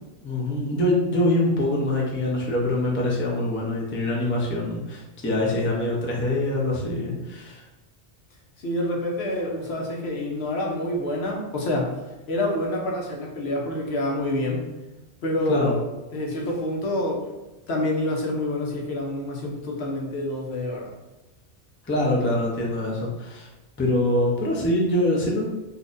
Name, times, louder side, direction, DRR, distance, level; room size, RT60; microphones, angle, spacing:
voice 1, 0.2-7.6 15.5-15.7 21.8-23.5 23.8-25.5, left 1 dB, 15° left, -3 dB, 0.4 m, -24 dB
voice 2, 8.6-11.9 12.3-14.6 15.2-15.8 16.1-17.2 17.7-20.9, left 1 dB, 70° left, -1 dB, 0.9 m, -27 dB
4.0 x 2.5 x 2.5 m, 1.1 s
omnidirectional pair, 1.2 m